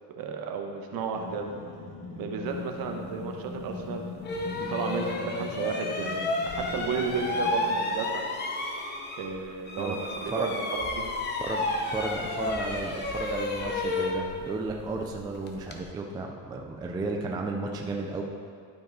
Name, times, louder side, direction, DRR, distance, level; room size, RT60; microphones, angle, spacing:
voice 1, 0.2-1.5 2.2-8.2 9.2-11.1, right 5 dB, 55° right, 3 dB, 1.1 m, -33 dB
sound 1, 1.1-7.9, left 4 dB, 75° left, 2.3 m, -41 dB
sound 2, 3.6-3.7 4.2-9.4 9.7-15.8, left 2 dB, 25° left, 0.7 m, -32 dB
voice 2, 11.4-18.2, right 3 dB, 10° right, 1 dB, 0.3 m, -33 dB
12.0 x 4.8 x 4.7 m, 2.1 s
cardioid pair, 160°, 44 cm